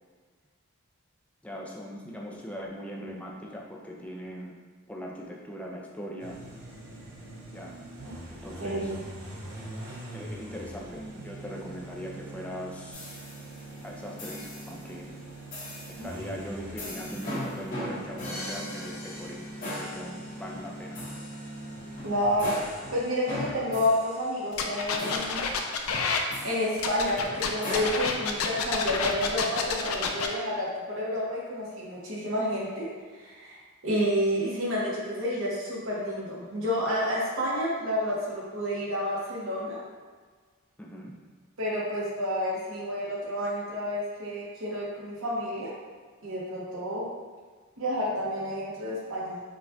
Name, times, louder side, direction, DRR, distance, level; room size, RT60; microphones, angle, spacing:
voice 1, 1.4-4.5 4.9-6.4 7.5-7.8 8.3-8.9 10.1-13.2 13.8-15.1 16.0-19.4 19.7-21.0 40.8-41.1, equal, 5° left, -2 dB, 0.4 m, -40 dB
sound 1, 6.2-23.0, right 1 dB, 55° right, 0.7 m, -43 dB
voice 2, 8.6-9.0 22.0-22.5 22.9-25.5 26.4-32.9 33.1-33.5 33.8-39.8 41.6-45.7 46.2-47.1 47.8-49.4, equal, 75° right, -5 dB, 1.0 m, -30 dB
sound 2, 12.9-13.7 14.2-14.8 15.5-16.1 16.8-27.9, left 1 dB, 40° left, 1.3 m, -39 dB
sound 3, 24.5-26.2 26.8-30.3, left 5 dB, 85° left, 0.4 m, -29 dB
5.0 x 2.3 x 2.7 m, 1.5 s
head